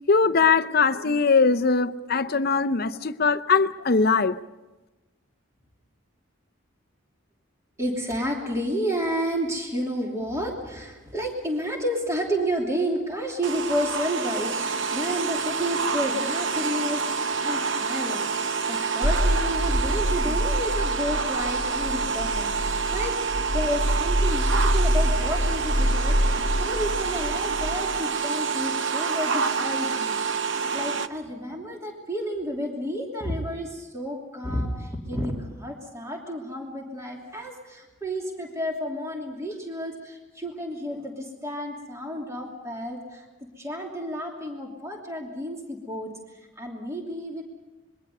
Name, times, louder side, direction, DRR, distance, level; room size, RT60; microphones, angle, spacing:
voice 1, 0.1-4.4, left 4 dB, 45° left, 0.7 m, -21 dB
voice 2, 7.8-43.2 43.6-46.1 46.6-47.4, equal, 15° right, 2.9 m, -31 dB
sound 1, 13.4-31.1, right 5 dB, 60° right, 0.8 m, -27 dB
sound 2, 19.0-27.8, equal, 85° right, 1.9 m, -26 dB
26.0 x 22.0 x 5.5 m
head